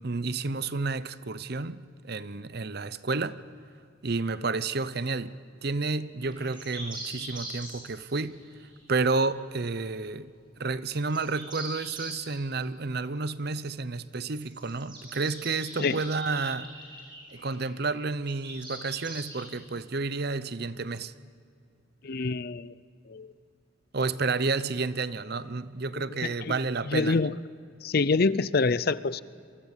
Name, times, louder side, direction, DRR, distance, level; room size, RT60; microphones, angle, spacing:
voice 1, 0.0-3.4 4.0-8.4 8.9-10.3 10.6-16.7 17.3-21.1 23.9-27.2, right 3 dB, 50° right, 0.7 m, -30 dB
sound 1, 6.2-9.1 10.9-12.2 14.1-17.7 18.3-19.5, right 2 dB, 20° right, 6.9 m, -42 dB
voice 2, 22.0-22.7 23.1-23.3 26.2-26.6 26.8-27.3 27.8-29.2, left 4 dB, 45° left, 0.5 m, -26 dB
27.5 x 23.5 x 7.3 m
head